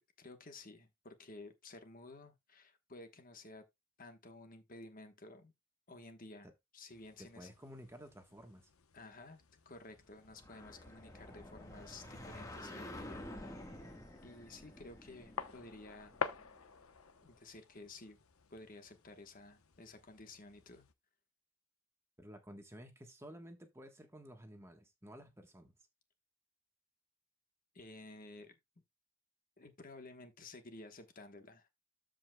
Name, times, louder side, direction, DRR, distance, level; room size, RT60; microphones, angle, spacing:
voice 1, 0.0-3.7 4.0-5.5 5.9-7.5 8.9-13.9 14.2-16.2 17.2-18.2 18.5-20.9 27.7-28.5 29.6-31.7, left 2 dB, 40° left, 1.2 m, -53 dB
sound 1, 6.9-20.9, left 5 dB, 75° left, 0.9 m, -50 dB
voice 2, 7.2-8.7 22.2-25.7, equal, 10° right, 1.2 m, -53 dB
sound 2, 10.2-16.8, left 1 dB, 15° left, 1.5 m, -50 dB
13.5 x 5.0 x 2.3 m
head